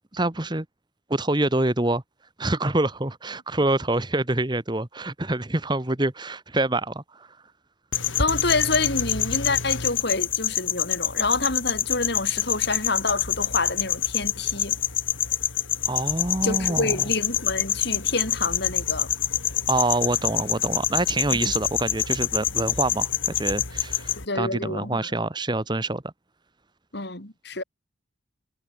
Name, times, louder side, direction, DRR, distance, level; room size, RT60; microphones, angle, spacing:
voice 1, 0.1-0.6 1.1-2.0 2.4-7.3 15.9-17.0 19.7-23.1 23.4-26.0, right 2 dB, 20° right, 1.3 m, -26 dB
sound 1, 7.9-24.3, left 10 dB, 75° left, 5.9 m, -26 dB
voice 2, 8.2-14.8 16.4-19.1 21.4-21.5 24.2-25.1 26.9-27.6, left 3 dB, 55° left, 4.0 m, -27 dB
head